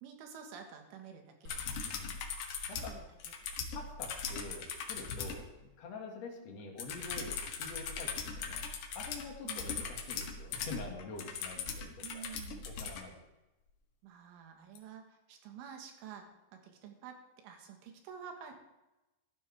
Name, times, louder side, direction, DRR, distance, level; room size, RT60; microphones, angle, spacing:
voice 1, 0.0-1.9 2.7-3.0 9.4-9.7 12.0-12.6 14.0-18.5, right 7 dB, 80° right, 4 dB, 4.0 m, -50 dB
sound 1, 1.5-5.4 6.8-13.0 14.8-14.9, left 5 dB, 70° left, 2.0 m, -40 dB
voice 2, 1.8-2.9 3.7-12.3 12.7-13.3, left 3 dB, 50° left, 0 dB, 2.3 m, -47 dB
15.5 x 12.5 x 3.5 m, 1.0 s
omnidirectional pair, 5.5 m